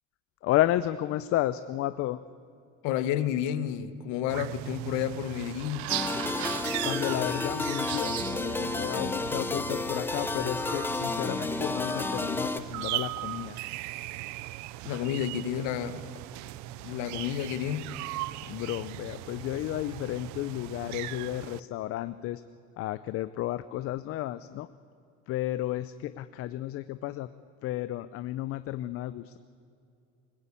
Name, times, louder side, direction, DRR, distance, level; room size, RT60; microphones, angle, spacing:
voice 1, 0.4-2.2 6.8-13.6 18.5-22.4 22.8-24.7 25.3-27.3 27.6-29.4, left 14 dB, 50° left, 14 dB, 0.5 m, -32 dB
voice 2, 2.8-5.9 14.8-16.1 16.8-17.9, left 10 dB, 80° left, 13 dB, 1.2 m, -31 dB
sound 1, 4.3-21.6, right 17 dB, 70° right, 0.6 m, -38 dB
sound 2, 5.9-12.6, left 3 dB, 5° left, 0.6 m, -31 dB
20.5 x 19.5 x 8.5 m, 2.5 s
cardioid pair, 160°, 29 cm